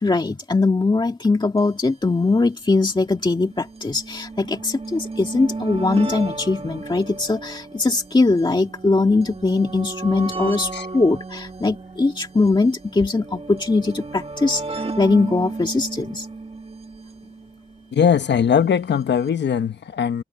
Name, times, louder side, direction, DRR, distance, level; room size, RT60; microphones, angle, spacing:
voice 1, 0.0-16.3, left 3 dB, 25° left, 1.9 m, -21 dB
sound 1, 1.6-1.7 1.8-1.9 2.8-18.0 19.0-19.1 19.3-19.4, right 3 dB, 35° right, 2.1 m, -34 dB
voice 2, 17.9-20.2, left 7 dB, 80° left, 1.2 m, -20 dB
wide cardioid pair, 95°, 18 cm